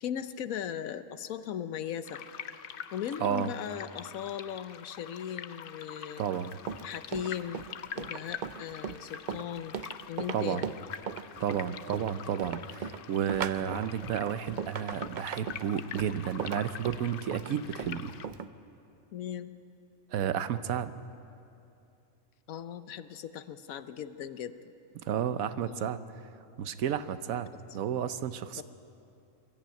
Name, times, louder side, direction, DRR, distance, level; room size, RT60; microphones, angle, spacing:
voice 1, 0.0-2.2 2.9-6.2 6.8-7.6 7.9-9.8 10.1-10.7 19.1-19.6 22.5-24.5 25.6-25.9 27.7-27.8 28.6-28.7, left 9 dB, 80° left, 12 dB, 1.2 m, -38 dB
sound 1, 2.0-18.3, left 8 dB, 55° left, 0.6 m, -45 dB
voice 2, 3.2-3.5 6.2-6.6 10.3-10.7 11.4-18.1 20.1-20.9 25.0-26.0 26.6-28.6, right 9 dB, 85° right, 12 dB, 1.2 m, -32 dB
Run, 6.3-18.5, right 7 dB, 55° right, 0.5 m, -38 dB
22.5 x 13.5 x 9.0 m, 2.7 s
omnidirectional pair, 1.4 m